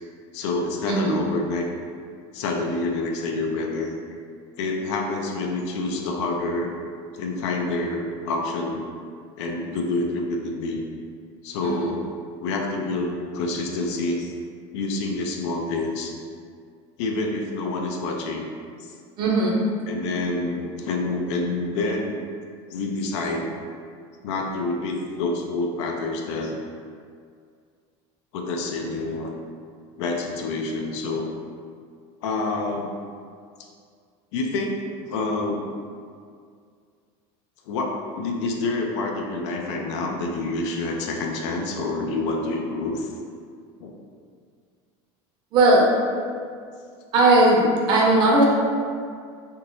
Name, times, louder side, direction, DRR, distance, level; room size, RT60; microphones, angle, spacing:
voice 1, 0.3-1.7 2.3-3.9 4.6-6.7 7.1-8.9 9.4-10.9 11.4-12.0 12.4-14.3 14.7-16.1 17.0-18.5 18.8-18.9 19.9-22.2 22.7-23.6 24.2-26.5 28.3-29.4 30.0-31.3 32.2-32.9 34.3-35.7 37.7-43.1 43.8-43.9, left 2 dB, 85° left, 2 dB, 0.5 m, -27 dB
voice 2, 0.9-1.2 11.6-11.8 19.2-19.6 45.5-45.9 47.1-48.5, right 2 dB, 30° right, -3 dB, 0.5 m, -18 dB
3.6 x 2.8 x 2.6 m, 2.2 s
cardioid pair, 175°, 14 cm